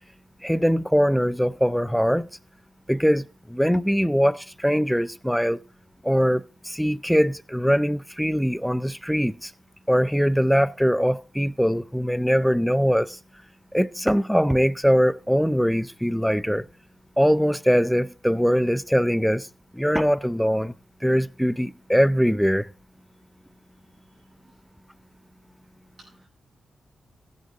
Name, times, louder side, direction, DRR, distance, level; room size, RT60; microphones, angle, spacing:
voice 1, 0.4-2.3 2.9-5.6 6.0-9.5 9.9-13.2 13.7-16.6 17.2-19.5 19.7-20.7 21.0-22.7, equal, ahead, 0.5 m, -22 dB
voice 2, 23.8-24.6 26.0-26.3, right 2 dB, 35° right, 7.9 m, -57 dB
15.5 x 9.6 x 3.7 m
cardioid pair, 85°, 0 cm